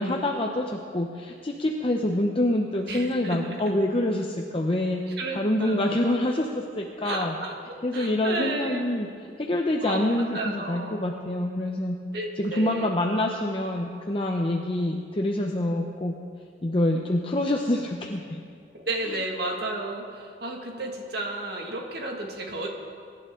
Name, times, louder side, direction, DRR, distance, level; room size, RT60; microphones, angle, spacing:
voice 1, 0.0-5.0 5.3-7.3 7.8-9.1 9.4-12.0 12.4-16.1 16.6-18.4, left 1 dB, 30° left, 1 dB, 0.7 m, -26 dB
voice 2, 2.9-3.6 5.2-6.0 7.0-7.6 7.9-8.8 9.8-11.0 12.1-12.9 18.7-22.7, right 2 dB, 65° right, 1 dB, 2.0 m, -32 dB
23.0 x 11.0 x 3.8 m, 2.3 s
head